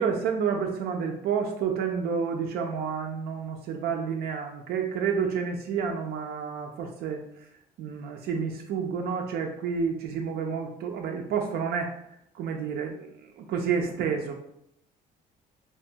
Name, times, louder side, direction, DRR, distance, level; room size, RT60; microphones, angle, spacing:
voice 1, 0.0-7.2 7.8-11.9 12.3-13.1 13.4-14.3, right 6 dB, 70° right, 2 dB, 0.4 m, -29 dB
2.6 x 2.2 x 2.7 m, 0.76 s
cardioid pair, 110°, 17 cm